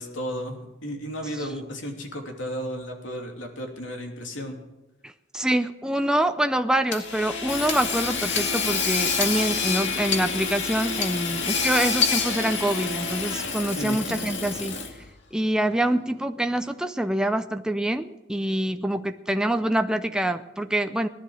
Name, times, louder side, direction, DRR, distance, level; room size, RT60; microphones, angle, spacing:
voice 1, 0.0-4.6 13.8-14.2, equal, 85° left, 2 dB, 3.0 m, -34 dB
voice 2, 5.0-14.8 15.3-21.1, right 1 dB, 5° right, 7 dB, 0.5 m, -25 dB
Hammer / Sawing, 6.9-15.1, left 5 dB, 65° left, 2.1 m, -27 dB
18.5 x 11.5 x 6.5 m, 0.96 s
head